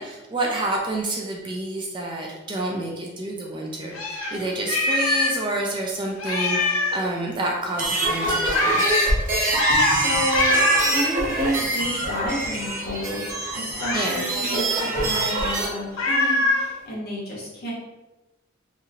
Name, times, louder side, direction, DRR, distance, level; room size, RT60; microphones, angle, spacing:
voice 1, 0.0-8.8 13.9-14.2, right 2 dB, 25° right, -1 dB, 0.3 m, -28 dB
Meow, 3.9-5.4 5.7-5.8 6.2-7.1 8.5-9.1 9.6-10.0 10.3-10.9 13.8-14.4 16.0-16.7, left 2 dB, 85° left, 0.5 m, -23 dB
sound 1, 7.7-15.7, right 2 dB, 40° right, 0.9 m, -24 dB
voice 2, 9.9-10.6 10.8-13.2 13.5-17.7, equal, 50° left, -6 dB, 1.0 m, -30 dB
3.0 x 2.7 x 2.4 m, 1.1 s
head